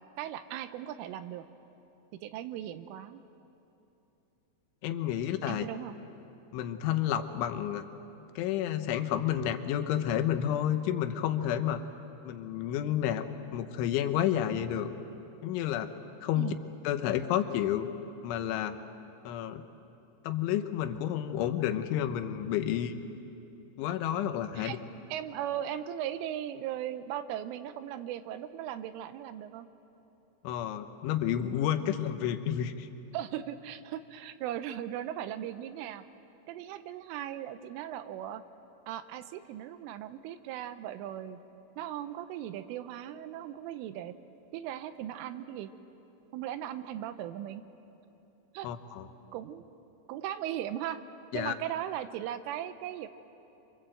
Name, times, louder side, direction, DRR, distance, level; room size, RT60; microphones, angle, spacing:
voice 1, 0.2-1.5 2.2-3.2 5.5-5.9 16.3-16.6 24.6-24.8 25.1-29.7 33.1-36.0 36.5-38.4 38.9-41.4 41.8-44.2 44.5-45.7 46.3-47.6 48.5-48.7 49.3-49.7 50.1-51.0 51.3-53.1, right 11 dB, 80° right, 10 dB, 3.2 m, -38 dB
voice 2, 4.8-5.7 6.5-7.9 8.4-11.8 12.3-13.3 13.5-14.9 15.4-15.9 16.2-16.5 16.9-17.9 18.2-18.8 19.3-19.6 20.3-23.0 23.8-24.8 30.5-32.9 48.6-49.1 51.3-51.5, left 10 dB, 75° left, 9 dB, 3.3 m, -30 dB
27.5 x 25.5 x 7.8 m, 2.9 s
omnidirectional pair, 5.7 m